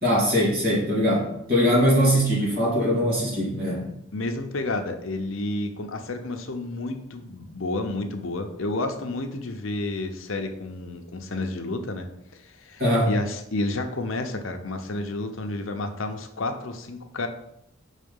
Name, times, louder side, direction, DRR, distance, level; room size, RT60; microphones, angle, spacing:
voice 1, 0.0-3.9 12.8-13.1, equal, 45° right, -5 dB, 2.7 m, -21 dB
voice 2, 4.1-12.1 12.3-17.3, left 2 dB, 80° left, 5 dB, 0.8 m, -30 dB
5.8 x 4.1 x 5.4 m, 0.78 s
head